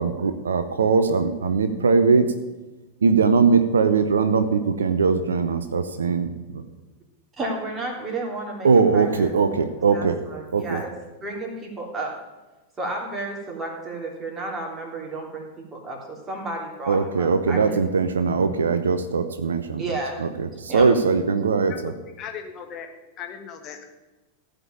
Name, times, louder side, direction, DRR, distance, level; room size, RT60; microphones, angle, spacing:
voice 1, 0.0-2.3 3.0-6.3 8.6-10.2 10.5-10.8 16.9-21.9, right 5 dB, 70° right, 9 dB, 0.7 m, -21 dB
voice 2, 7.4-9.3 9.9-10.9 11.2-12.2 12.8-17.8 19.8-20.2 20.7-20.9, right 2 dB, 20° right, -1 dB, 3.3 m, -32 dB
voice 3, 22.2-22.9 23.2-23.8, left 8 dB, 35° left, 4 dB, 1.4 m, -37 dB
15.0 x 5.3 x 8.8 m, 1.1 s
figure-of-eight pair, 90°, 0 cm